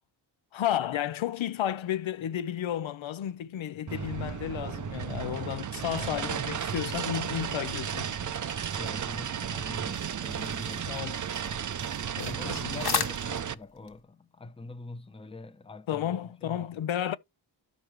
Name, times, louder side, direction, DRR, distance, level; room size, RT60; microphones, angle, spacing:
voice 1, 0.5-8.3 10.8-11.2 12.2-13.0 15.9-17.2, left 11 dB, 75° left, 0.7 m, -32 dB
sound 1, 3.9-13.5, right 8 dB, 40° right, 0.5 m, -34 dB
voice 2, 5.7-6.4 8.8-11.3 12.2-16.7, left 3 dB, 10° left, 0.7 m, -44 dB
sound 2, 8.5-14.0, left 6 dB, 50° left, 1.3 m, -38 dB
12.5 x 5.2 x 3.1 m
wide cardioid pair, 90°, 48 cm